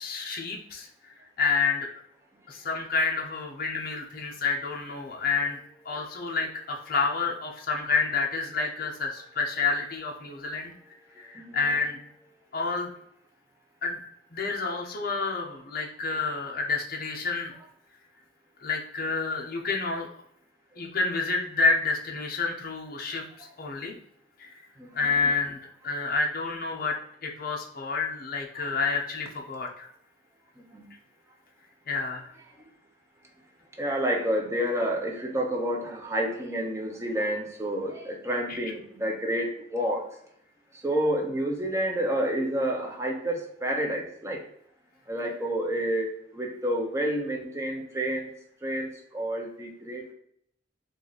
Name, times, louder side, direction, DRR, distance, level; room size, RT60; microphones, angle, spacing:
voice 1, 0.0-1.9 2.5-5.6 5.8-10.7 11.1-12.0 12.5-12.9 13.8-14.0 14.3-17.5 18.6-20.1 20.8-24.0 24.4-24.5 24.9-29.9 31.9-32.3 38.5-38.6, left 4 dB, 45° left, 0 dB, 0.6 m, -29 dB
voice 2, 11.4-11.7 23.4-23.5 24.8-25.1 30.7-30.9 33.8-40.1 40.8-44.4 45.1-48.3 48.6-50.1, right 1 dB, 15° right, 1 dB, 0.6 m, -29 dB
3.1 x 2.4 x 3.9 m, 0.69 s
head